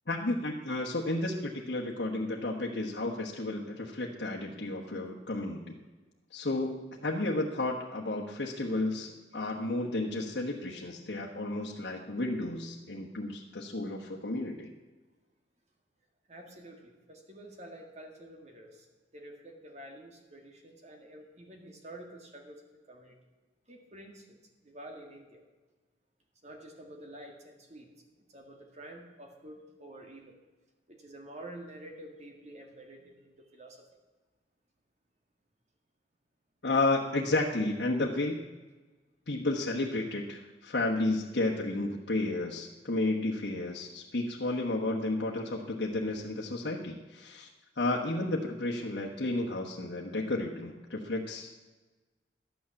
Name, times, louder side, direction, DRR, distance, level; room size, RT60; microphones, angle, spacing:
voice 1, 0.1-5.8 6.3-14.7 36.6-38.4 39.3-47.5 47.8-51.5, left 2 dB, 70° left, -3 dB, 1.3 m, -32 dB
voice 2, 16.3-18.9 19.1-22.6 22.9-23.2 23.7-24.4 24.6-25.4 26.4-27.9 28.2-30.4 30.9-33.8 45.9-46.2, right 1 dB, 40° right, 2 dB, 2.0 m, -49 dB
12.5 x 9.4 x 7.1 m, 1.2 s
head